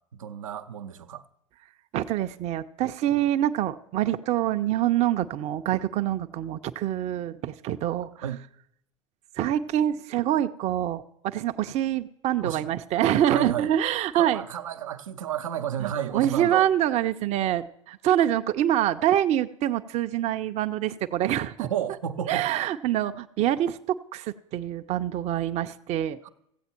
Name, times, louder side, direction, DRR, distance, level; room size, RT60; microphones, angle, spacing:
voice 1, 0.1-1.2 8.2-8.5 12.4-12.7 13.3-13.7 14.2-16.6 21.6-22.5 26.2-26.3, right 9 dB, 80° right, 0.7 m, -32 dB
voice 2, 1.9-8.2 9.4-14.4 15.8-21.7 22.3-26.2, right 11 dB, 40° right, 0.6 m, -25 dB
15.0 x 8.1 x 4.4 m
hypercardioid pair, 80°, 17 cm